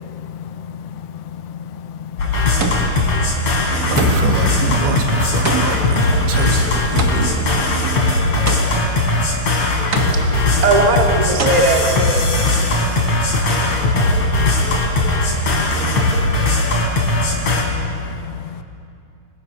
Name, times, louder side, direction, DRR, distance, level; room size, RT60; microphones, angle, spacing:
voice 1, 0.1-3.7 8.3-9.3 9.6-10.5 12.3-16.7 17.0-18.6, left 8 dB, 85° left, 7 dB, 3.2 m, -33 dB
sound 1, 1.6-2.0 2.6-3.1 4.0-4.5 5.4-7.5 8.5-9.0 9.9-10.5 11.4-11.5, right 4 dB, 50° right, 1.1 m, -26 dB
sound 2, 2.2-17.6, left 2 dB, 40° left, 4.8 m, -18 dB
voice 2, 3.9-7.4, right 3 dB, 70° right, 2 dB, 4.3 m, -23 dB
voice 3, 10.0-13.1, right 2 dB, 15° right, 1 dB, 1.6 m, -20 dB
29.0 x 23.0 x 6.6 m, 2.5 s
omnidirectional pair, 4.8 m